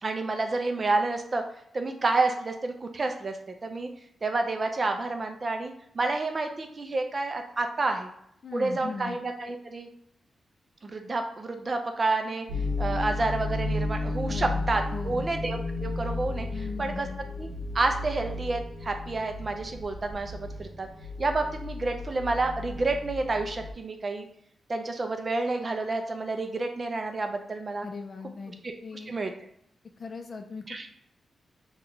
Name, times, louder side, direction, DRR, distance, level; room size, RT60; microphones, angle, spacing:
voice 1, 0.0-1.4 1.7-3.9 4.2-8.1 8.5-9.9 10.8-12.5 12.8-16.5 16.8-17.1 17.4-17.5 17.7-20.9 21.2-24.3 24.7-27.9 28.6-28.7 29.1-29.3 30.7-30.9, right 3 dB, 35° right, 5 dB, 0.4 m, -29 dB
voice 2, 8.4-9.2 14.3-15.3 16.5-17.2 27.8-28.5 28.8-29.2 30.0-30.9, left 4 dB, 40° left, 5 dB, 0.4 m, -39 dB
sound 1, 12.5-23.7, left 2 dB, 80° right, 0.8 m, -33 dB
2.9 x 2.2 x 3.7 m, 0.71 s
wide cardioid pair, 145°, 0 cm